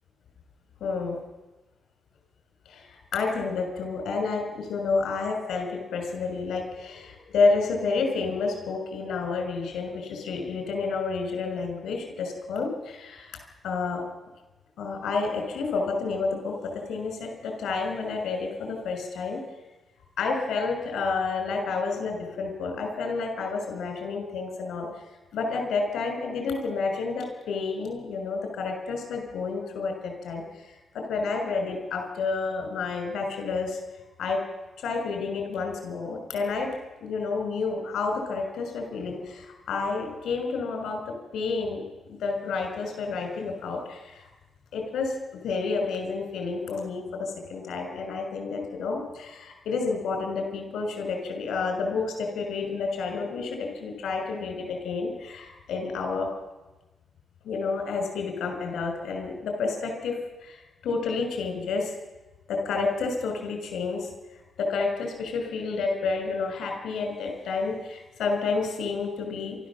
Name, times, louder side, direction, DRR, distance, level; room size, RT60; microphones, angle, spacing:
voice 1, 0.8-1.2 2.7-14.0 14.8-19.4 20.2-25.0 25.3-33.8 34.2-34.4 34.8-36.7 37.0-44.3 44.7-56.3 57.4-61.9 62.5-69.6, left 4 dB, 90° left, 4 dB, 6.3 m, -30 dB
28.0 x 14.0 x 7.5 m, 1.1 s
cardioid pair, 125°, 0 cm